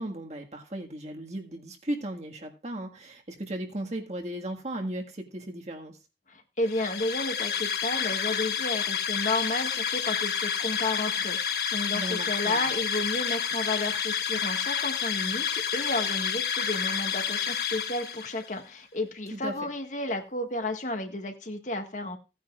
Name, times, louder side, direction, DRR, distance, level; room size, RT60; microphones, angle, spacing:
voice 1, 0.0-6.0 11.9-12.7 19.3-19.7, right 1 dB, 40° right, 2 dB, 1.8 m, -36 dB
voice 2, 6.3-22.2, left 2 dB, 45° left, 5 dB, 1.7 m, -32 dB
sound 1, 6.6-18.5, left 8 dB, 65° left, 1.2 m, -29 dB
17.0 x 9.4 x 2.4 m, 0.28 s
head